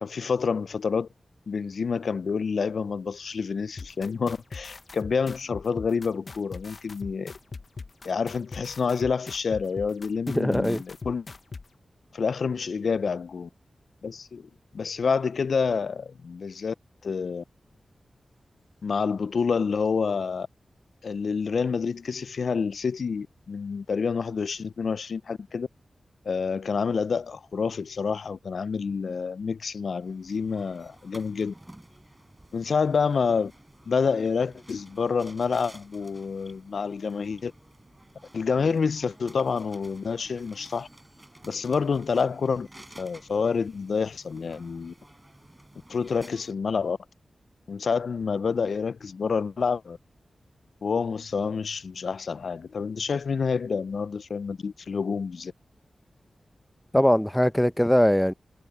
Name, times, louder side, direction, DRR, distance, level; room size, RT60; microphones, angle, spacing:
voice 1, 0.0-1.1 1.5-7.3 8.0-11.3 12.1-13.5 14.0-16.7 17.0-17.4 18.8-20.5 21.0-25.7 26.3-31.5 32.5-33.5 33.9-37.5 38.3-40.9 41.4-42.7 43.0-44.9 45.9-47.0 47.7-50.0 50.8-55.5, left 5 dB, 75° left, 0.3 m, -28 dB
sound 1, 3.8-11.6, left 4 dB, 60° left, 0.7 m, -40 dB
voice 2, 10.3-10.8 56.9-58.3, equal, 5° left, 0.6 m, -21 dB
sound 2, 29.9-46.5, right 1 dB, 15° right, 5.2 m, -52 dB
cardioid pair, 50°, 0 cm